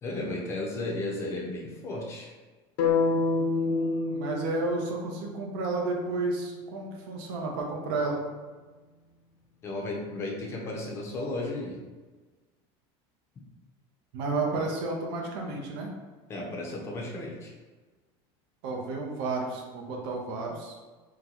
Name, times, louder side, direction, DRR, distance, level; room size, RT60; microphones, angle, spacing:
voice 1, 0.0-2.3 9.6-11.8 16.3-17.5, left 2 dB, 20° left, -1 dB, 0.5 m, -34 dB
sound 1, 2.8-6.8, left 4 dB, 75° left, 0.6 m, -29 dB
voice 2, 3.1-8.2 14.1-15.9 18.6-20.7, right 3 dB, 70° right, 0 dB, 0.6 m, -32 dB
3.9 x 2.1 x 2.9 m, 1.3 s
cardioid pair, 175°, 13 cm